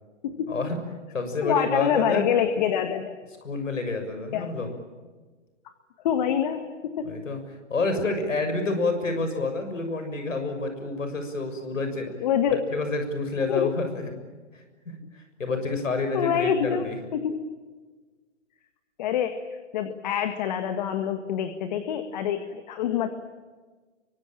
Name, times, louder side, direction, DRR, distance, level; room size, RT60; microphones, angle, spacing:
voice 1, 0.5-0.8 1.1-2.3 3.4-4.7 7.0-7.4 7.7-12.1 12.7-14.1 14.5-17.0, left 3 dB, 85° left, 7 dB, 6.7 m, -28 dB
voice 2, 1.4-3.1 4.3-4.5 6.0-7.2 12.2-12.6 13.5-13.7 16.1-17.4 19.0-19.4 19.7-23.1, left 9 dB, 35° left, 8 dB, 1.8 m, -26 dB
25.5 x 24.0 x 8.9 m, 1.4 s
hypercardioid pair, 155°, 37 cm